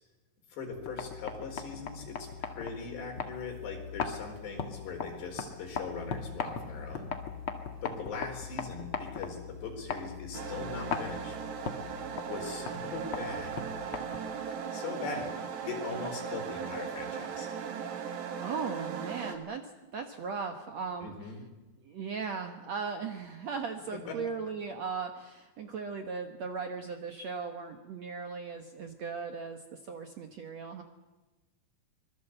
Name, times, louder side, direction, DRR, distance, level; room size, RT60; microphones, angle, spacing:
voice 1, 0.5-7.1 7.8-11.4 12.3-13.6 14.5-17.5 21.0-21.5 24.1-24.2, left 4 dB, 80° left, 3 dB, 6.6 m, -40 dB
sound 1, 0.7-14.4, left 6 dB, 45° left, 1.9 m, -40 dB
sound 2, 10.3-19.4, right 7 dB, 85° right, 4.4 m, -38 dB
voice 2, 18.4-19.6 19.9-21.3 21.8-29.6 29.9-30.8, right 5 dB, 60° right, 5 dB, 1.8 m, -37 dB
25.0 x 21.0 x 8.0 m, 1.1 s
omnidirectional pair, 4.8 m